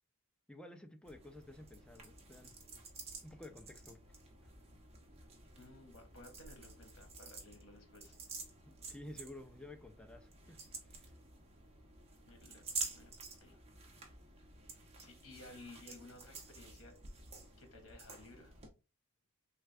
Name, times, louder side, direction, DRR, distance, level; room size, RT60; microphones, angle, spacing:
voice 1, 0.5-2.5 3.2-4.0 8.6-10.6 10.8-11.1, left 1 dB, 5° left, 0.3 m, -52 dB
sound 1, 1.0-18.7, right 4 dB, 30° right, 0.8 m, -50 dB
voice 2, 5.5-8.1 12.2-13.1 13.4-13.6 14.7-16.9 17.4-18.5, left 2 dB, 70° left, 1.1 m, -56 dB
3.3 x 2.2 x 3.2 m
head